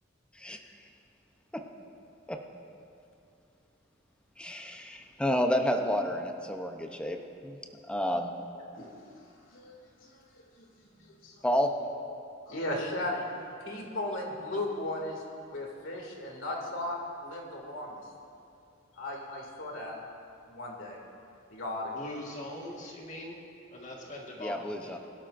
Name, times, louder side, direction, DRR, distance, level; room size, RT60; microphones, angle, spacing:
voice 1, 4.4-7.2 7.4-7.6 7.9-8.3 11.4-11.7 24.4-25.0, equal, 5° left, 3 dB, 0.7 m, -30 dB
voice 2, 9.5-10.7 11.2-11.4 12.5-13.2 13.7-15.2 15.5-18.0 19.0-20.0 20.5-21.0 21.5-22.1, left 1 dB, 85° left, -1 dB, 2.4 m, -36 dB
voice 3, 21.9-23.4 23.7-24.7, left 1 dB, 40° left, -2 dB, 1.7 m, -41 dB
22.0 x 12.0 x 2.6 m, 2.7 s
head